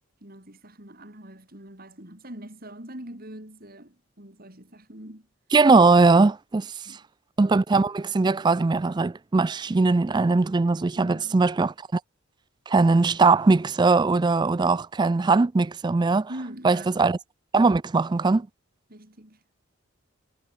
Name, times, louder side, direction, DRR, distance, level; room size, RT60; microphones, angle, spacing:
voice 1, 0.2-5.3 6.6-7.0 11.0-11.5 16.3-17.0 18.9-19.4, right 1 dB, 45° right, 4.8 m, -43 dB
voice 2, 5.5-6.7 7.4-12.0 12.7-16.3 16.6-17.2 17.5-18.5, right 3 dB, 20° right, 0.3 m, -20 dB
head